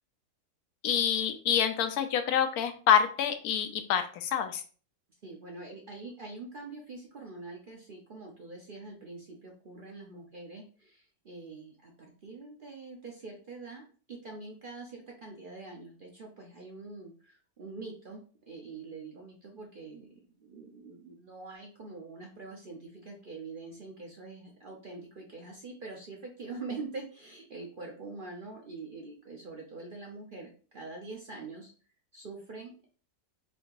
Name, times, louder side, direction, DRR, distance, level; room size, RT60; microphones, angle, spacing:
voice 1, 0.8-4.6, left 8 dB, 80° left, 8 dB, 1.1 m, -27 dB
voice 2, 5.2-18.2 18.5-31.7 32.1-32.9, right 3 dB, 50° right, 0 dB, 0.6 m, -44 dB
4.2 x 2.8 x 2.9 m, 0.39 s
omnidirectional pair, 1.6 m